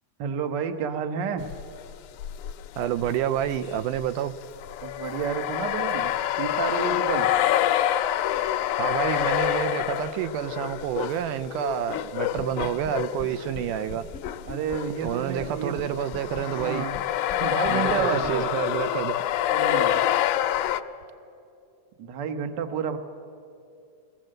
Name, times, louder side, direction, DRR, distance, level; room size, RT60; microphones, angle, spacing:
voice 1, 0.2-1.5 4.8-7.3 14.4-15.8 16.5-17.0 17.4-18.4 19.5-20.0 22.0-23.0, right 6 dB, 65° right, 1.1 m, -30 dB
sound 1, 1.5-1.8 2.2-14.4 14.7-20.8, left 12 dB, 75° left, 2.0 m, -27 dB
voice 2, 2.8-4.3 8.8-14.1 15.0-16.9 17.7-19.2, right 10 dB, 80° right, 2.1 m, -29 dB
sound 2, 12.4-12.9 13.2-13.3 13.5-13.6 13.9-15.5 15.8-15.9 16.1-19.1, left 6 dB, 55° left, 0.7 m, -39 dB
22.0 x 19.0 x 7.8 m
omnidirectional pair, 3.7 m